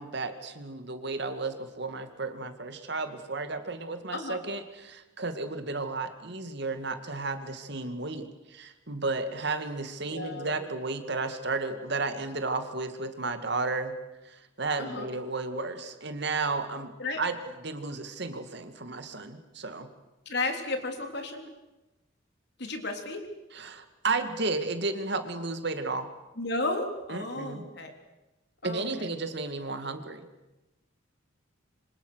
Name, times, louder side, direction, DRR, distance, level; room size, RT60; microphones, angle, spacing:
voice 1, 0.0-14.0 14.2-19.9 23.5-26.1 27.1-27.7 28.6-30.3, right 3 dB, 55° right, 8 dB, 2.2 m, -33 dB
voice 2, 10.1-10.5 14.8-15.1 17.0-17.2 20.3-21.4 22.6-23.2 26.4-27.9 28.6-29.1, left 2 dB, 55° left, 5 dB, 3.7 m, -33 dB
27.0 x 26.0 x 6.4 m, 1.0 s
head